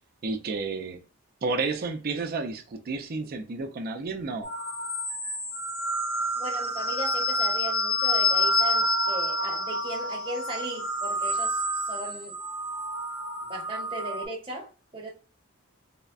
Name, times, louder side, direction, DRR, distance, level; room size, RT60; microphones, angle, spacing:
voice 1, 0.2-1.0 1.4-4.5, right 3 dB, 45° right, 0.4 m, -31 dB
sound 1, 4.4-14.3, left 1 dB, 45° left, 0.5 m, -28 dB
voice 2, 6.4-12.4 13.5-15.1, right 1 dB, 25° right, 0.8 m, -37 dB
3.4 x 2.1 x 2.4 m
head